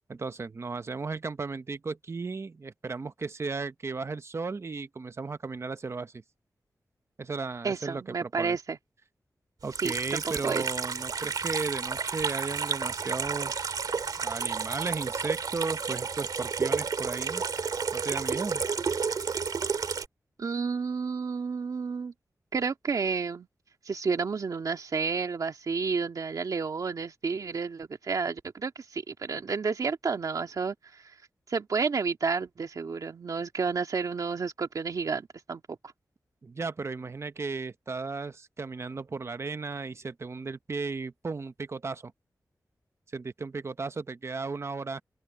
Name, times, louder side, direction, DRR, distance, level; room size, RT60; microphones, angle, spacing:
voice 1, 0.1-6.2 7.2-8.6 9.6-13.8 14.2-17.4 17.9-18.6 36.4-42.1 43.1-45.0, right 4 dB, 45° right, 0.9 m, -35 dB
voice 2, 7.6-8.8 9.8-10.7 20.4-22.1 22.5-23.5 23.9-31.0 31.5-35.8, right 5 dB, 65° right, 2.2 m, -31 dB
Water tap faucet / Sink (filling or washing), 9.7-20.1, right 5 dB, 80° right, 2.1 m, -31 dB
open air
wide cardioid pair, 110°, 6 cm